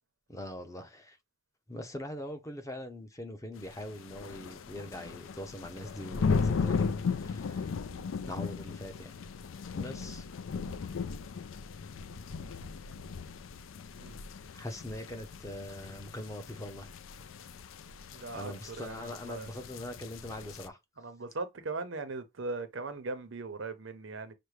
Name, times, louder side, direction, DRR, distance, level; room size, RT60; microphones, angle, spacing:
voice 1, 0.3-1.2 1.7-7.7 8.3-9.1 9.8-10.3 14.5-16.9 18.3-20.8, left 1 dB, 15° left, 0.6 m, -42 dB
sound 1, 3.6-20.7, left 5 dB, 80° left, 0.4 m, -37 dB
voice 2, 18.1-19.5 21.0-24.3, right 3 dB, 75° right, 0.7 m, -39 dB
5.9 x 2.1 x 3.2 m
head